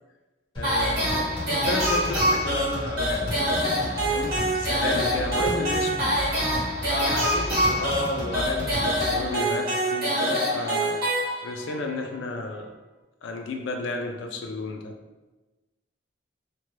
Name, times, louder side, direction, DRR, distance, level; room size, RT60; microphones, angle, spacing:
sound 1, 0.5-9.3, equal, 25° left, 1.2 m, -34 dB
voice 1, 0.6-6.1 6.9-11.0 11.4-12.7 13.2-15.0, left 2 dB, 70° left, 3 dB, 0.4 m, -32 dB
sound 2, 0.6-11.7, equal, 50° right, 1.0 m, -25 dB
2.9 x 2.1 x 3.1 m, 1.2 s
head